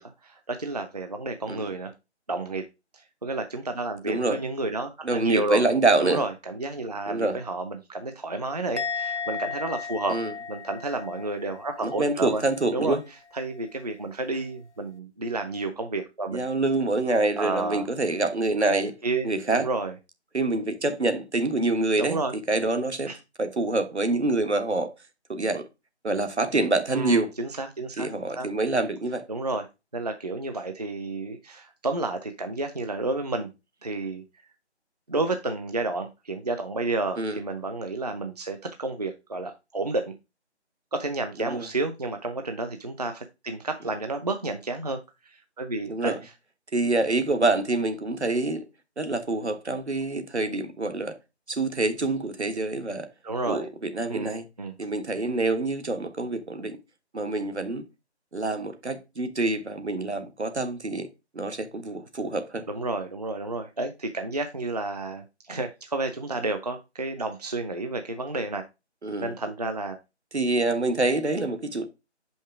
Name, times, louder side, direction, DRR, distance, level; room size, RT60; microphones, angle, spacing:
voice 1, 0.0-1.9 2.3-2.6 2.9-5.6 6.0-10.2 10.5-12.4 12.7-13.0 13.3-16.4 17.4-17.9 18.7-19.9 22.0-22.3 23.1-23.2 26.9-28.1 28.3-28.5 29.3-29.6 29.9-33.5 33.8-34.2 35.1-40.1 40.9-46.1 53.2-53.7 54.1-54.7 62.7-68.6 69.2-70.0, right 2 dB, 35° right, 0.6 m, -31 dB
voice 2, 4.0-4.4 5.0-6.2 7.1-7.4 10.1-10.3 11.8-13.0 16.3-19.0 19.2-19.7 20.3-22.2 22.5-23.1 23.4-24.9 25.3-25.7 26.0-27.3 28.0-29.2 37.2-37.4 41.4-41.7 45.9-46.2 46.7-48.6 49.0-51.1 51.5-53.1 53.5-54.4 54.8-56.8 57.1-57.8 58.3-61.1 61.3-62.7 69.0-69.3 70.3-71.9, right 2 dB, 70° right, 1.5 m, -26 dB
Musical instrument, 8.8-12.2 12.4-12.8, left 6 dB, 80° left, 0.6 m, -35 dB
6.6 x 5.5 x 3.4 m
figure-of-eight pair, 155°, 34 cm